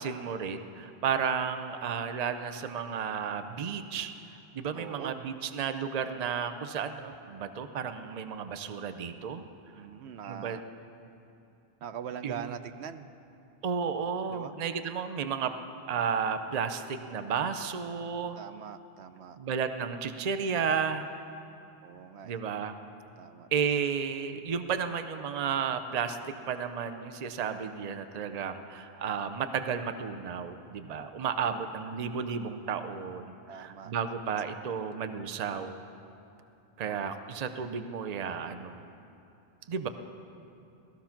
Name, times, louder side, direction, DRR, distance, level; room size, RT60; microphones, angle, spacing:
voice 1, 0.0-4.1 4.5-9.5 10.2-10.6 12.2-12.5 13.6-15.5 15.9-18.4 19.4-21.1 22.2-22.8 23.5-35.8 36.8-38.8 39.7-39.9, right 6 dB, 45° right, 9 dB, 0.7 m, -33 dB
voice 2, 4.7-5.2 9.7-10.6 11.8-13.1 14.3-14.5 18.4-19.4 21.8-22.4 23.2-23.5 31.4-31.6 33.5-34.1 34.6-34.7 36.8-37.4, right 8 dB, 80° right, 10 dB, 0.9 m, -43 dB
17.5 x 13.5 x 5.8 m, 2.8 s
omnidirectional pair, 1.1 m